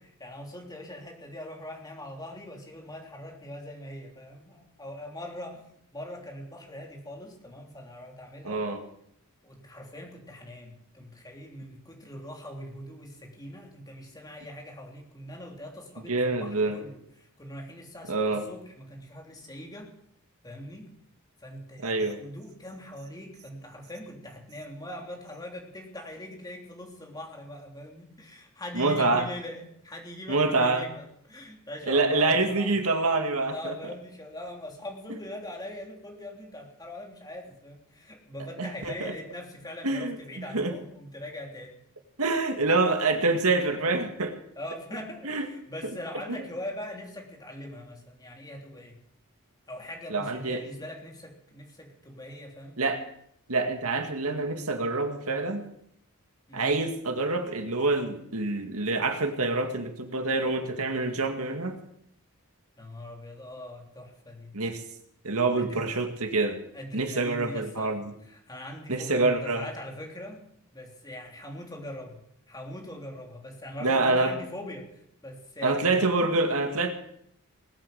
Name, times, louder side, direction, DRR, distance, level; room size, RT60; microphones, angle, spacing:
voice 1, 0.2-5.6 5.9-8.7 9.4-19.9 20.4-20.9 21.4-32.7 33.5-41.8 44.6-49.0 49.7-52.8 56.5-56.9 62.8-64.6 65.5-65.8 66.7-67.9 68.2-70.4 70.7-72.2 72.5-76.3, left 1 dB, 15° left, 1 dB, 3.3 m, -41 dB
voice 2, 8.4-8.8 16.1-16.8 18.1-18.4 21.8-22.2 28.7-29.3 30.3-30.9 31.9-33.7 38.6-39.1 39.8-40.2 40.5-40.7 42.2-44.4 45.2-45.5 45.8-45.9 46.3-46.4 50.1-50.6 52.8-53.0 53.5-55.6 56.5-61.8 64.5-64.8 65.2-66.6 66.9-68.1 68.9-69.7 73.8-74.3 75.6-76.9, right 3 dB, 75° right, 5 dB, 2.1 m, -26 dB
20.0 x 8.7 x 8.0 m, 0.71 s
head